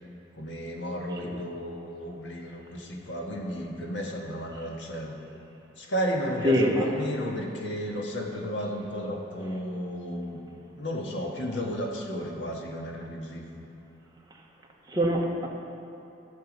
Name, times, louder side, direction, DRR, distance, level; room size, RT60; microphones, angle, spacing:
voice 1, 0.4-5.2 5.8-10.4 10.7-13.4, equal, 80° left, 0 dB, 1.6 m, -33 dB
voice 2, 6.4-6.8 14.9-15.5, equal, 20° right, -1 dB, 1.2 m, -24 dB
13.5 x 6.9 x 5.3 m, 2.9 s
head